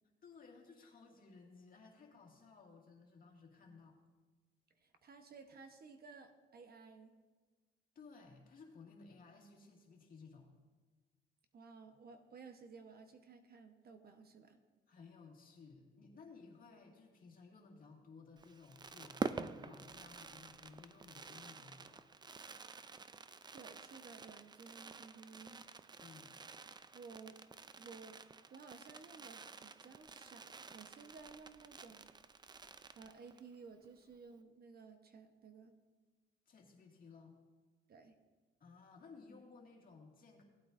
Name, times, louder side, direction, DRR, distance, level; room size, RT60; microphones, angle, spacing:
voice 1, 0.2-4.0 8.0-10.5 14.9-22.1 26.0-26.4 36.5-37.4 38.6-40.4, left 4 dB, 45° left, 0 dB, 2.1 m, -58 dB
voice 2, 4.8-7.1 11.5-14.6 23.5-25.6 26.9-27.4 27.8-28.2 28.5-32.1 32.9-35.8 37.9-38.2, right 5 dB, 50° right, 7 dB, 1.0 m, -55 dB
Fireworks, 18.4-33.5 33.8-33.9 34.1-34.4, right 4 dB, 20° right, 0.4 m, -49 dB
17.0 x 8.5 x 2.6 m, 1.4 s
cardioid pair, 90°, 20 cm